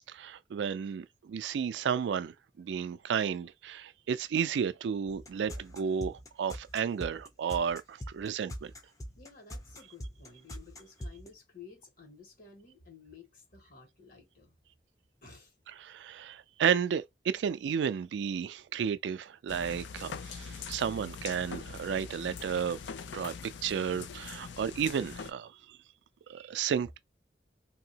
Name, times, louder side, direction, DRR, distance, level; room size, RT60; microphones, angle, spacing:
voice 1, 0.1-8.7 15.8-22.8 23.1-23.3 23.6-25.5 26.3-27.0, right 7 dB, 80° right, 0.3 m, -32 dB
sound 1, 5.1-11.3, equal, 20° left, 0.5 m, -42 dB
voice 2, 9.2-14.6 15.2-15.5 18.4-18.5, left 5 dB, 55° left, 1.4 m, -54 dB
sound 2, 19.5-25.3, left 6 dB, 90° left, 0.4 m, -43 dB
2.8 x 2.7 x 2.7 m
head